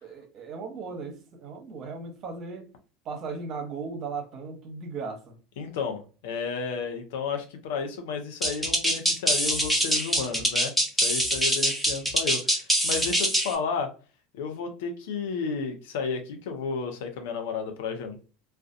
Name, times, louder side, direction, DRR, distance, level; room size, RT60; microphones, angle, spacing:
voice 1, 0.0-2.6 3.0-5.4, right 4 dB, 50° right, 0.8 m, -37 dB
voice 2, 5.6-10.7 11.0-13.9 14.3-18.2, left 5 dB, 75° left, 0.6 m, -32 dB
sound 1, 8.4-13.6, equal, ahead, 0.9 m, -24 dB
2.4 x 2.2 x 2.5 m
hypercardioid pair, 80°, 0 cm